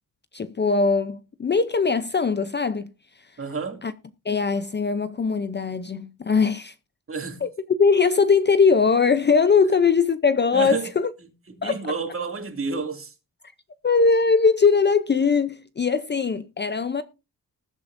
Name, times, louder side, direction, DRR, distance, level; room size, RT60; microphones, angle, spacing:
voice 1, 0.3-2.9 3.8-3.9 4.2-6.7 7.4-7.5 7.8-11.1 11.6-11.8 13.8-17.0, left 5 dB, 30° left, 0.6 m, -21 dB
voice 2, 3.4-3.8 7.1-7.4 10.5-10.9 11.6-13.1, right 4 dB, 35° right, 2.5 m, -30 dB
20.0 x 8.5 x 2.6 m
wide cardioid pair, 155°, 36 cm